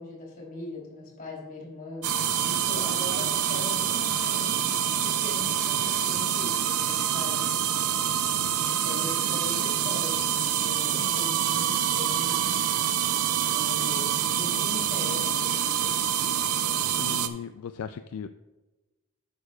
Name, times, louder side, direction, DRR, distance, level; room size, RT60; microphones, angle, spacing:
voice 1, 0.0-2.1 2.4-4.7 4.9-7.5 8.7-12.4 13.5-15.9, left 2 dB, 40° left, -2 dB, 3.1 m, -40 dB
sound 1, 2.0-17.3, right 9 dB, 85° right, 0.6 m, -26 dB
voice 2, 17.0-18.3, left 7 dB, 70° left, 9 dB, 0.3 m, -37 dB
11.5 x 8.7 x 2.3 m, 1.1 s
head